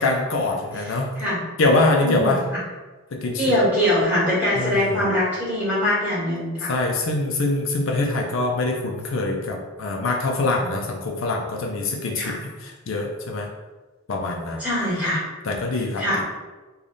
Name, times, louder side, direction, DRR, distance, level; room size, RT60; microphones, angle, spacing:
voice 1, 0.0-1.2 1.6-2.4 3.1-3.5 4.5-5.1 6.7-13.5 14.1-14.6 15.4-16.2, left 2 dB, 65° left, 1 dB, 0.5 m, -24 dB
voice 2, 0.8-1.4 2.0-2.6 3.4-6.7 12.1-12.4 14.6-15.2 16.0-16.2, left 1 dB, 10° right, -9 dB, 1.5 m, -23 dB
3.3 x 2.3 x 3.9 m, 1.2 s
head